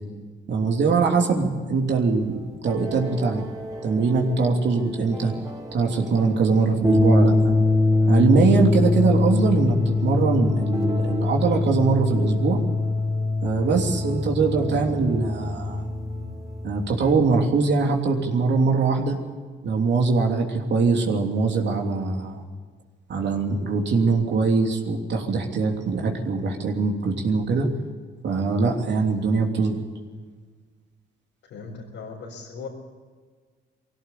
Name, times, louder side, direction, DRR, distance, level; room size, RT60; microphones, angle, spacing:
voice 1, 0.5-2.4 2.6-3.4 3.8-5.3 5.7-7.5 8.1-12.6 13.4-15.9 16.6-19.2 19.6-22.4 23.1-27.7 28.2-29.8, right 4 dB, 60° right, 2 dB, 3.1 m, -22 dB
sound 1, 2.2-17.1, left 2 dB, 20° right, 4.0 m, -24 dB
voice 2, 31.4-32.7, left 5 dB, 80° left, -4 dB, 4.7 m, -38 dB
21.0 x 17.0 x 8.4 m, 1.5 s
cardioid pair, 90°, 20 cm